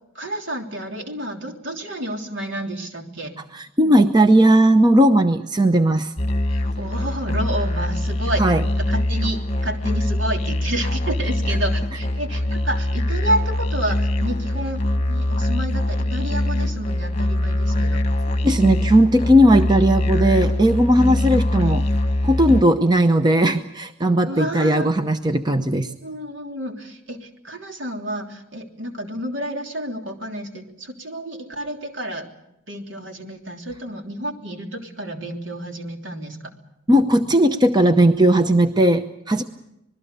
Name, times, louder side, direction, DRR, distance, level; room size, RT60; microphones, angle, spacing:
voice 1, 0.1-3.3 6.5-18.1 21.2-21.3 24.3-24.9 26.0-32.3 32.7-36.4, right 1 dB, 70° right, 3 dB, 3.3 m, -30 dB
voice 2, 3.5-6.1 8.4-8.6 18.4-21.8 22.2-25.9 36.9-39.4, right 1 dB, 20° right, 7 dB, 0.8 m, -17 dB
Musical instrument, 6.2-22.6, left 1 dB, 30° left, 1.3 m, -23 dB
26.5 x 20.5 x 6.7 m, 0.84 s
head